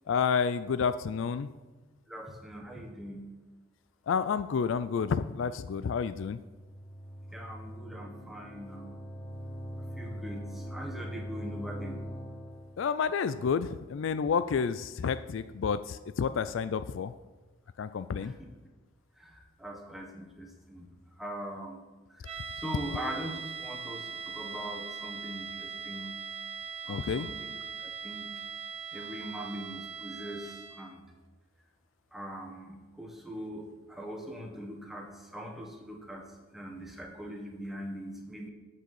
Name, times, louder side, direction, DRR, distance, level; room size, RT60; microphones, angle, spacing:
voice 1, 0.1-1.5 4.1-6.4 12.8-17.1 17.8-18.3 26.9-27.3, left 6 dB, 75° left, 13 dB, 0.4 m, -30 dB
voice 2, 2.1-3.3 7.3-9.1 10.0-12.0 18.2-18.5 19.2-21.8 22.1-26.2 26.9-27.5 27.8-28.3 28.9-31.0 32.1-38.5, right 1 dB, ahead, 0 dB, 1.5 m, -42 dB
sound 1, 5.9-12.8, equal, 25° left, 1.4 m, -42 dB
sound 2, 22.2-31.0, right 6 dB, 30° right, 0.9 m, -41 dB
7.5 x 6.4 x 7.1 m, 1.2 s
head